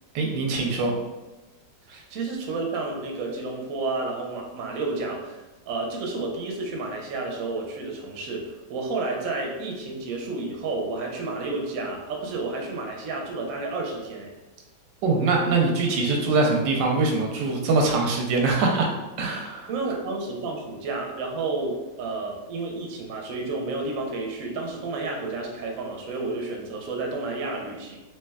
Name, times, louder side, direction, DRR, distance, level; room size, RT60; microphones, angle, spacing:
voice 1, 0.1-0.9 1.9-2.0 15.0-18.9 19.2-19.7, right 3 dB, 90° right, 0 dB, 1.3 m, -23 dB
voice 2, 2.1-14.3 19.7-28.0, right 3 dB, 65° right, 0 dB, 0.8 m, -31 dB
3.3 x 2.8 x 2.2 m, 1.1 s
omnidirectional pair, 1.9 m